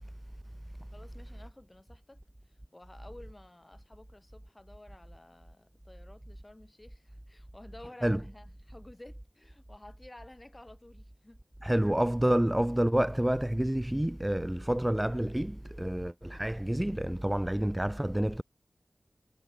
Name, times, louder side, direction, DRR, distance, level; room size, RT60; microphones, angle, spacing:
voice 1, 0.9-11.4, left 1 dB, 25° left, 4.4 m, -53 dB
voice 2, 11.6-18.4, right 1 dB, 10° right, 0.9 m, -28 dB
wide cardioid pair, 60°, 0 cm